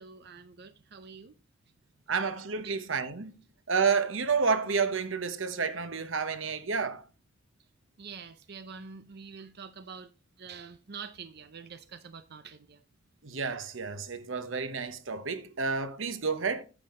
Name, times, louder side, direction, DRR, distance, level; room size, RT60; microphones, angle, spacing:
voice 1, 0.0-1.4 2.6-2.7 8.0-10.1 10.4-12.8, right 5 dB, 55° right, 0.7 m, -46 dB
voice 2, 2.1-3.3 3.7-7.0 13.2-16.6, right 5 dB, 90° right, 1.1 m, -30 dB
9.9 x 7.5 x 3.8 m
head